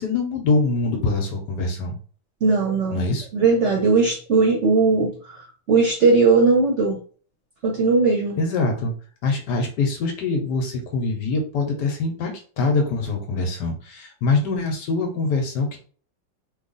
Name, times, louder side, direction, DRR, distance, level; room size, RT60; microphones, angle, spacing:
voice 1, 0.0-2.0 2.9-3.3 8.4-8.9 9.2-15.8, left 3 dB, 70° left, 2 dB, 1.3 m, -24 dB
voice 2, 2.4-3.0 3.3-5.4 5.7-7.0 7.6-8.4, right 4 dB, 50° right, -2 dB, 0.9 m, -18 dB
3.3 x 2.4 x 3.8 m, 0.42 s
omnidirectional pair, 2.0 m